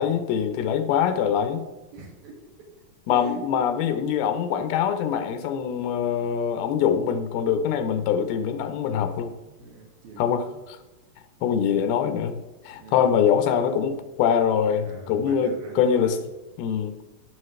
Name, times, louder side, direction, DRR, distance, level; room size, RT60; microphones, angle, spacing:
voice 1, 0.0-1.7 3.1-9.3 10.2-10.5 11.4-16.2 16.6-17.0, left 8 dB, 85° left, 10 dB, 2.7 m, -24 dB
voice 2, 1.9-2.7 3.1-3.4 9.6-10.3 12.7-13.1 14.8-16.3, right 3 dB, 75° right, -1 dB, 3.8 m, -42 dB
16.0 x 6.6 x 3.2 m, 1.1 s
omnidirectional pair, 4.3 m